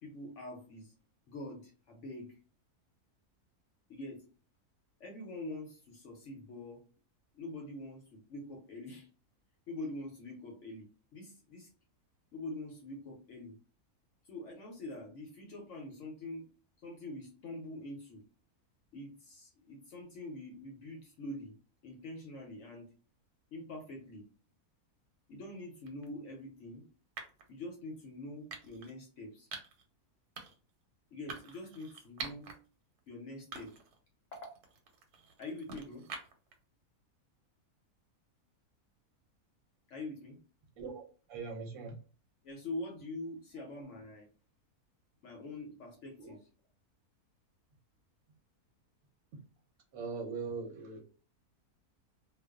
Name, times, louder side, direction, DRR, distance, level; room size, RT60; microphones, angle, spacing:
voice 1, 0.0-0.9 1.3-2.4 3.9-4.2 5.0-6.8 7.3-9.1 9.7-11.7 12.3-13.6 14.2-16.4 16.8-18.2 18.9-21.5 21.8-22.9 23.5-24.3 25.3-26.9 27.5-29.5 31.1-32.5 33.1-33.7 34.3-34.5 35.4-36.1 39.9-40.4 42.4-44.3 45.2-46.4, left 2 dB, 65° left, 0 dB, 0.8 m, -44 dB
sound 1, 25.9-26.1 27.2-27.5 28.5-28.9 29.5-29.8 30.4-30.7 31.3-32.6 33.0-33.1 33.5-34.0 34.3-36.5, right 4 dB, 85° right, 1.1 m, -46 dB
voice 2, 40.8-42.0 43.5-43.6 46.2-46.4 49.9-51.0, right 4 dB, 65° right, 0 dB, 0.9 m, -41 dB
2.4 x 2.2 x 2.3 m, 0.38 s
omnidirectional pair, 1.6 m